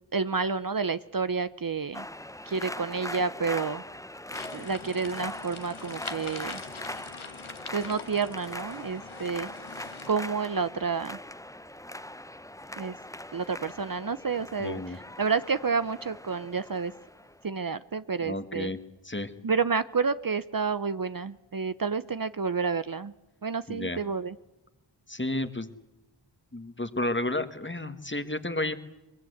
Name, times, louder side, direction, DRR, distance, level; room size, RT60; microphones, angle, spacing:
voice 1, 0.1-2.1 2.5-3.8 4.5-6.6 7.7-9.5 10.1-11.2 12.8-13.0 13.3-16.9 17.4-18.7 19.4-23.1 23.4-24.4, right 5 dB, 45° right, 14 dB, 0.7 m, -29 dB
sound 1, 1.9-17.4, left 1 dB, 5° left, 0.8 m, -41 dB
sound 2, 4.3-10.1, left 5 dB, 80° left, 1.5 m, -44 dB
voice 2, 14.6-15.0 18.2-18.8 19.0-19.3 23.7-24.0 25.1-25.7 26.5-28.7, left 1 dB, 25° left, 10 dB, 1.6 m, -31 dB
24.0 x 22.0 x 8.0 m, 1.0 s
wide cardioid pair, 40°, 48 cm